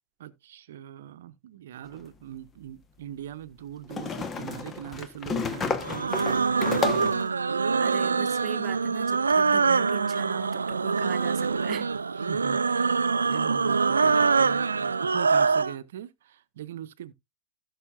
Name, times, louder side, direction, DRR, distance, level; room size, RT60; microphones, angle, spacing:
voice 1, 0.2-6.8 12.1-17.1, right 11 dB, 65° right, 0.8 m, -41 dB
sound 1, 1.9-2.0 3.9-7.3, left 5 dB, 25° left, 1.1 m, -31 dB
sound 2, 5.8-15.7, right 5 dB, 80° right, 0.4 m, -24 dB
voice 2, 7.8-11.9, right 12 dB, 40° right, 1.0 m, -39 dB
16.5 x 6.4 x 2.4 m
figure-of-eight pair, 95°, 0 cm